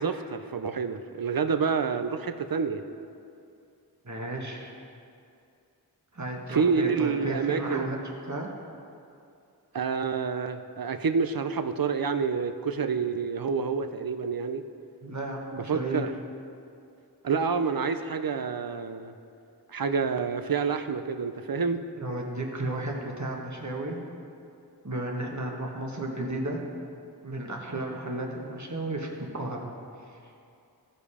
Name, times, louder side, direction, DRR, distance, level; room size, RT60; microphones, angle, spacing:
voice 1, 0.0-2.8 6.5-7.9 9.7-14.6 15.5-16.1 17.2-19.1 19.7-21.8, right 5 dB, 60° right, 9 dB, 0.6 m, -28 dB
voice 2, 4.0-4.7 6.1-8.0 8.3-8.5 15.0-16.0 22.0-24.0 24.8-26.6 27.2-29.1 29.3-29.7 30.1-30.2, right 1 dB, 45° right, 0 dB, 1.4 m, -33 dB
15.0 x 5.3 x 4.9 m, 2.5 s
wide cardioid pair, 50°, 40 cm